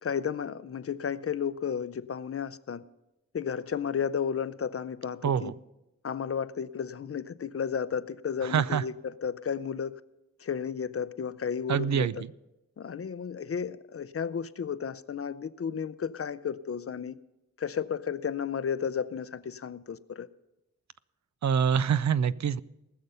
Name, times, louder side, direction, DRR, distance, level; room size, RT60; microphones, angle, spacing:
voice 1, 0.0-2.8 3.3-5.5 6.0-10.0 10.4-12.2 12.8-17.2 17.6-20.3, left 7 dB, 50° left, 0.5 m, -33 dB
voice 2, 5.2-5.5 8.4-8.8 11.7-12.2 21.4-22.6, right 7 dB, 70° right, 0.5 m, -25 dB
19.0 x 6.7 x 5.5 m
wide cardioid pair, 70°, 29 cm